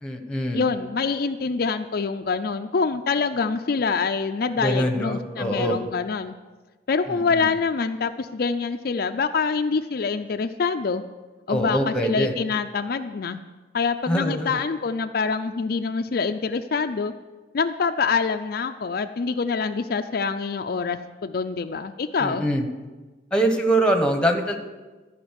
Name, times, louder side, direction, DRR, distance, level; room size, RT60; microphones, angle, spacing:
voice 1, 0.0-0.6 4.6-5.8 7.1-7.5 11.5-12.3 14.1-14.7 22.2-22.6 23.3-24.6, right 1 dB, 5° left, 5 dB, 1.0 m, -24 dB
voice 2, 0.5-6.3 6.9-11.0 11.5-13.4 13.7-17.1 17.5-22.4, left 5 dB, 55° left, 7 dB, 0.4 m, -25 dB
14.0 x 5.1 x 8.1 m, 1.2 s
head